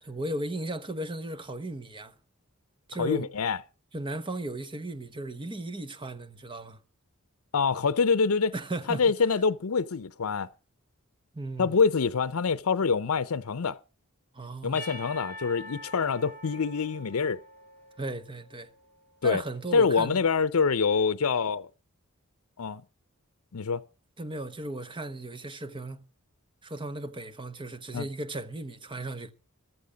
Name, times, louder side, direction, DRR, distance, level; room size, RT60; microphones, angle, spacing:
voice 1, 0.0-2.1 2.9-3.3 3.9-6.8 8.5-9.0 11.3-11.8 14.3-14.9 18.0-18.7 19.2-20.2 24.2-26.0 26.6-29.3, right 1 dB, 25° right, 1.1 m, -36 dB
voice 2, 3.0-3.6 7.5-8.5 8.9-10.5 11.6-13.8 14.6-17.4 19.2-19.4 19.7-21.7 22.6-22.8 23.5-23.8 27.9-28.1, left 5 dB, 75° left, 0.6 m, -25 dB
Percussion / Church bell, 14.8-19.1, left 1 dB, 10° left, 2.2 m, -45 dB
14.5 x 11.0 x 5.1 m
head